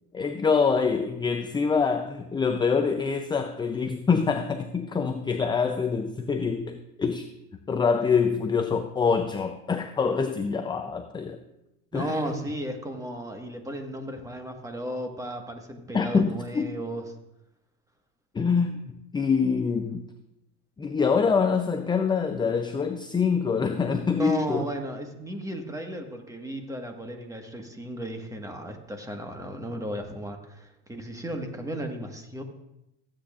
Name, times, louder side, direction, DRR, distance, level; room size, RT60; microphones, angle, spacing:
voice 1, 0.1-7.3 7.7-11.4 11.9-12.2 15.9-16.7 18.3-20.0 20.8-24.7, left 5 dB, 10° left, 7 dB, 0.5 m, -25 dB
voice 2, 11.9-17.0 24.1-32.4, right 1 dB, 10° right, 4 dB, 1.5 m, -35 dB
15.5 x 8.7 x 2.5 m, 0.88 s
supercardioid pair, 105°, 37 cm